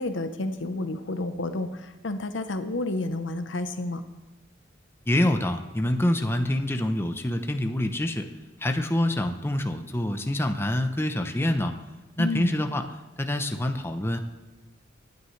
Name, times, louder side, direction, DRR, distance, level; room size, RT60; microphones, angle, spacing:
voice 1, 0.0-4.0 12.2-12.5, left 2 dB, 80° left, 9 dB, 0.8 m, -30 dB
voice 2, 5.1-8.2 8.6-11.7 12.2-12.8 13.2-14.2, left 1 dB, 15° left, 5 dB, 0.7 m, -26 dB
19.5 x 9.5 x 3.2 m, 1.2 s
head